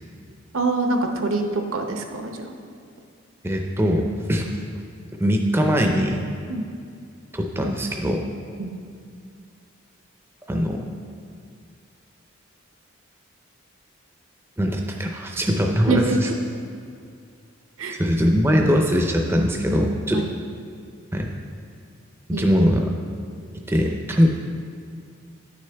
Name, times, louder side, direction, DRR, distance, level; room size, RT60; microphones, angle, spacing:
voice 1, 0.5-2.5 6.5-6.6 8.6-8.7 15.9-16.4 17.8-18.0 20.1-20.3 22.3-22.6, right 3 dB, 75° right, 4 dB, 0.7 m, -25 dB
voice 2, 3.4-4.5 5.2-6.2 7.3-8.2 10.5-10.8 14.6-16.3 17.9-20.2 21.1-21.3 22.3-22.9 23.7-24.3, equal, 10° right, 2 dB, 0.4 m, -21 dB
9.8 x 6.4 x 3.4 m, 2.3 s
head